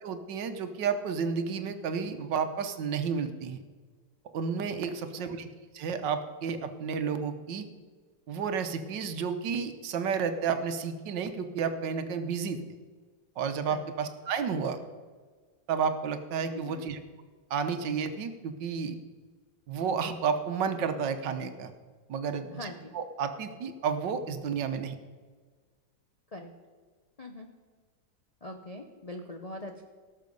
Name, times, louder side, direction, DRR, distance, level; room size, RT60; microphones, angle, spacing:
voice 1, 0.0-3.6 4.3-5.5 5.7-7.7 8.3-12.6 13.4-14.8 15.7-17.0 17.5-19.0 19.7-21.7 22.1-22.6 22.9-25.0, right 6 dB, 70° right, 8 dB, 1.5 m, -31 dB
voice 2, 4.9-5.3 13.7-13.9 16.5-16.9 22.5-22.9 26.3-26.5 27.2-27.5 28.4-29.8, left 1 dB, 55° left, 3 dB, 0.4 m, -42 dB
18.0 x 6.7 x 5.3 m, 1.5 s
omnidirectional pair, 2.0 m